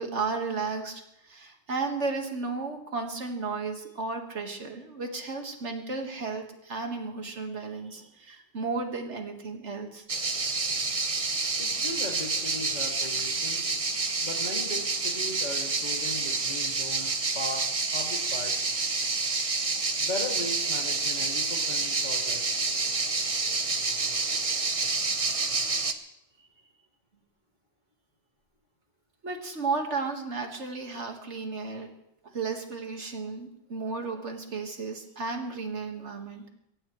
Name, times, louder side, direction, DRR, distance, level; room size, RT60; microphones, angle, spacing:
voice 1, 0.0-10.0 29.2-31.9 32.3-36.5, right 4 dB, 85° right, 4 dB, 2.1 m, -34 dB
sound 1, 10.1-25.9, right 3 dB, 30° right, 1.0 m, -28 dB
voice 2, 11.6-13.7 14.2-18.7 20.0-22.6, left 1 dB, 40° left, 0 dB, 2.9 m, -38 dB
23.5 x 16.5 x 3.2 m, 0.80 s
omnidirectional pair, 1.2 m